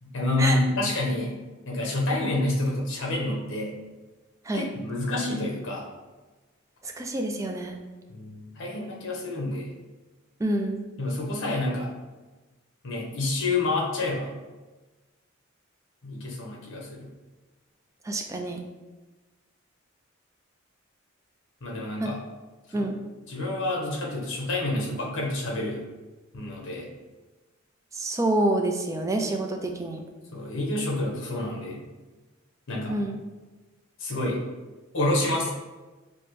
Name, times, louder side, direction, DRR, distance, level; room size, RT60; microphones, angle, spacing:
voice 1, 0.0-1.4 1.7-3.8 4.5-5.9 8.1-9.7 11.0-11.9 12.8-14.3 16.0-17.1 21.6-22.2 22.7-22.9 23.3-25.8 26.3-26.9 30.3-31.8 32.7-33.0 34.0-34.4 34.9-35.5, left 2 dB, 65° left, -2 dB, 0.9 m, -28 dB
voice 2, 6.8-7.8 10.4-10.8 18.0-18.6 22.0-22.1 22.7-23.0 27.9-30.0 32.9-33.2, right 2 dB, 15° right, 3 dB, 0.3 m, -27 dB
4.9 x 2.1 x 3.0 m, 1.2 s
head